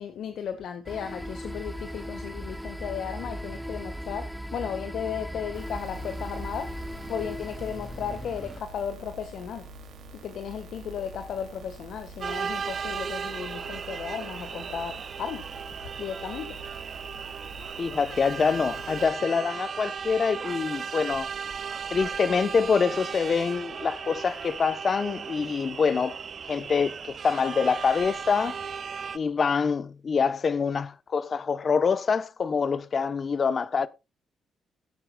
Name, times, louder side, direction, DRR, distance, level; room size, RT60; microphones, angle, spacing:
voice 1, 0.0-6.8 7.1-9.7 10.1-15.5 16.0-16.6, left 8 dB, 70° left, 1.3 m, -35 dB
sound 1, 0.9-8.6, equal, ahead, 0.6 m, -37 dB
sound 2, 5.5-19.1, right 3 dB, 70° right, 2.6 m, -46 dB
sound 3, 12.2-29.2, right 6 dB, 45° right, 0.5 m, -36 dB
voice 2, 17.8-21.3 21.9-26.2 26.5-28.6 29.1-33.9, left 5 dB, 40° left, 0.8 m, -25 dB
17.0 x 9.8 x 2.3 m
cardioid pair, 90°, 0 cm